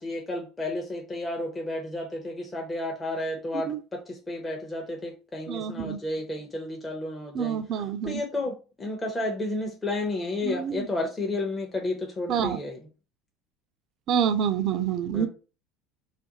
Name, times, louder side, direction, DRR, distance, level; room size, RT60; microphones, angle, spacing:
voice 1, 0.0-12.8 15.1-15.3, left 2 dB, 20° left, 0 dB, 0.6 m, -32 dB
voice 2, 5.5-6.0 7.3-8.2 10.4-10.9 12.3-12.6 14.1-15.3, right 8 dB, 50° right, 9 dB, 0.3 m, -27 dB
2.5 x 2.1 x 2.8 m, 0.34 s
figure-of-eight pair, 65°, 0 cm